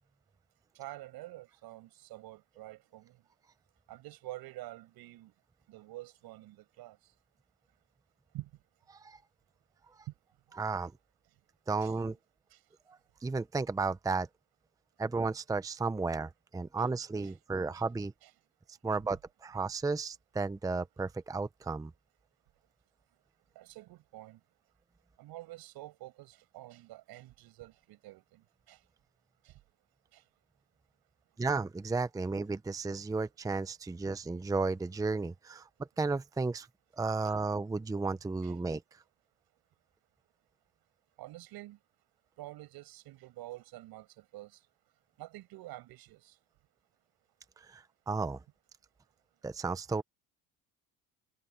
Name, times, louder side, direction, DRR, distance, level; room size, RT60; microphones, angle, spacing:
voice 1, 0.7-3.2 3.9-5.3 5.7-7.0 8.3-8.5 11.8-11.9 12.5-12.6 17.2-17.3 17.7-17.8 18.2-18.3 23.5-24.4 25.2-28.8 29.4-29.5 30.1-30.2 38.4-38.5 41.2-41.8 42.4-44.6 45.2-46.3, right 17 dB, 75° right, 6.6 m, -48 dB
voice 2, 10.6-10.9 11.7-12.2 12.9-14.3 15.0-18.1 18.8-21.9 31.4-35.7 36.0-36.7 37.0-38.8 47.6-48.4 49.4-50.0, right 3 dB, 10° right, 0.7 m, -33 dB
cardioid pair, 110°, 38 cm